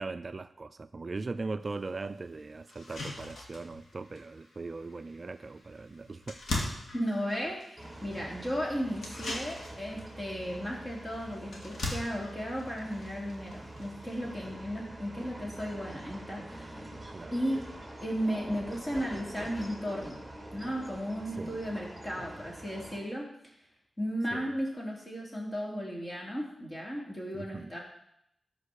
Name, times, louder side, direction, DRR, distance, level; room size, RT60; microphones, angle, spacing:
voice 1, 0.0-6.3 14.9-15.0 17.1-17.3 21.4-21.6 24.3-24.5 27.3-27.7, right 3 dB, 45° right, 12 dB, 0.4 m, -39 dB
sound 1, 1.7-1.8 2.2-2.3 2.7-14.3, left 2 dB, 85° left, 2.5 m, -42 dB
voice 2, 6.9-16.8 17.3-17.6 18.0-20.3 20.5-23.3 24.0-27.8, equal, 30° left, -2 dB, 3.7 m, -35 dB
sound 2, 7.8-23.0, right 1 dB, 5° right, 2.4 m, -45 dB
13.5 x 5.3 x 6.4 m, 0.77 s
cardioid pair, 75°, 0 cm